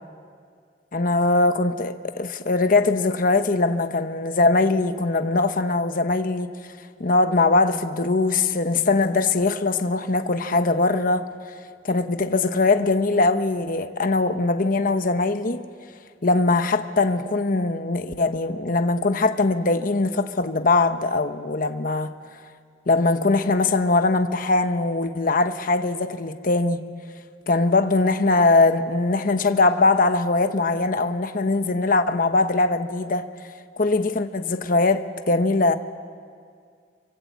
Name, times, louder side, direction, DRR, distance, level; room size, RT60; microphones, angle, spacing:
voice 1, 0.9-6.5 7.0-11.3 11.8-15.6 16.2-22.1 22.9-26.9 27.5-33.3 33.8-35.7, left 3 dB, 50° left, 1.0 m, -21 dB
27.0 x 25.0 x 8.4 m
head